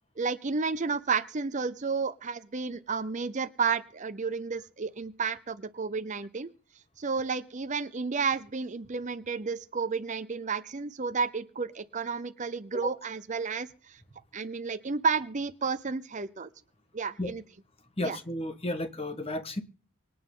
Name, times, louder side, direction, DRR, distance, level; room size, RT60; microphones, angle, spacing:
voice 1, 0.2-6.5 7.0-14.0 14.3-16.5 16.9-17.4 18.0-18.2, right 5 dB, 35° right, 0.6 m, -31 dB
voice 2, 18.0-19.6, left 1 dB, 25° left, 1.4 m, -33 dB
25.0 x 9.4 x 3.8 m
head